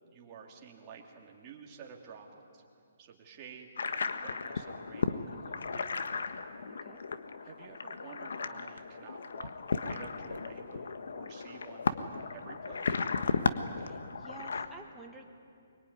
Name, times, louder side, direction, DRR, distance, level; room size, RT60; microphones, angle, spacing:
voice 1, 0.0-2.6 3.0-6.0 7.4-13.0, right 6 dB, 25° right, 0 dB, 3.0 m, -51 dB
sound 1, 3.8-14.7, left 4 dB, 75° left, 1.4 m, -35 dB
voice 2, 13.8-15.3, right 3 dB, 5° right, 0 dB, 1.8 m, -50 dB
23.5 x 22.5 x 9.9 m, 2.4 s
hypercardioid pair, 165°, 0 cm